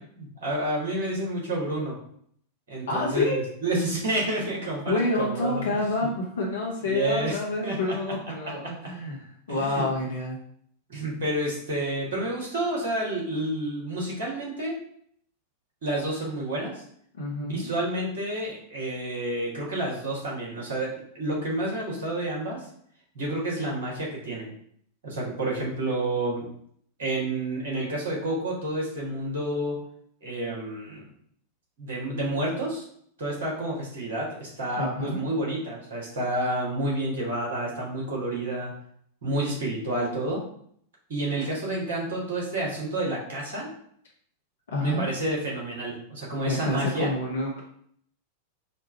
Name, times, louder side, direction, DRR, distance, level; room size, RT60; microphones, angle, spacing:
voice 1, 0.1-2.0 2.7-6.1 6.8-7.8 9.5-9.9 10.9-14.8 15.8-16.8 17.4-22.6 23.1-24.5 25.0-26.5 27.0-29.8 30.2-31.1 31.8-32.8 33.2-38.7 39.2-40.4 41.1-43.7 44.8-47.1, right 1 dB, 60° right, -4 dB, 1.6 m, -29 dB
voice 2, 2.9-3.4 3.9-4.0 4.9-10.4 17.1-17.7 34.8-35.2 44.7-45.1 46.4-47.6, left 2 dB, 65° left, -3 dB, 1.1 m, -28 dB
4.2 x 2.4 x 4.2 m, 0.65 s
figure-of-eight pair, 90°, 0 cm